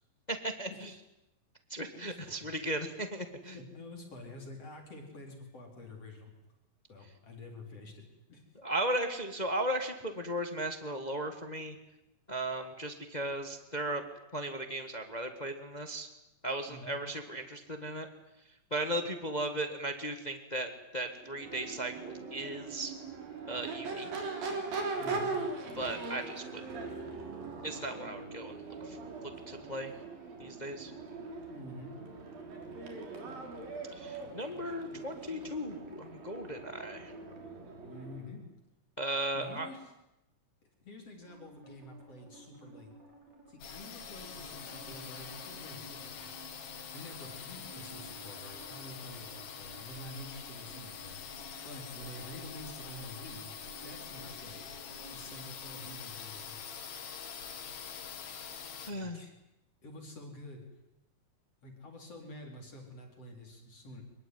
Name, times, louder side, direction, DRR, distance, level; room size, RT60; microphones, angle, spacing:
voice 1, 0.3-0.9 1.7-3.5 8.6-11.7 12.3-14.0 14.3-16.1 16.4-18.1 18.7-22.9 23.5-24.1 25.8-26.7 27.6-28.5 28.8-29.0 29.2-29.9 30.4-30.9 33.9-37.1 39.0-39.7 58.9-59.2, right 1 dB, 25° left, 7 dB, 0.8 m, -36 dB
voice 2, 1.9-2.5 3.4-6.3 6.9-8.0 8.3-8.4 16.7-17.0 25.0-25.4 31.5-32.0 37.8-38.4 39.3-39.9 40.8-42.9 43.5-46.3 46.9-53.5 53.8-54.7 55.1-56.6 58.8-59.3 59.8-60.6 61.6-64.0, left 1 dB, 45° left, 2 dB, 5.1 m, -48 dB
Crowd / Race car auto racing / Accelerating revving vroom, 21.2-38.3, right 3 dB, 80° right, 5.3 m, -41 dB
sound 1, 41.2-56.1, right 4 dB, 50° right, 7.1 m, -55 dB
sound 2, 43.6-58.9, left 7 dB, 85° left, 4.0 m, -45 dB
24.5 x 22.0 x 9.5 m, 0.90 s
omnidirectional pair, 4.1 m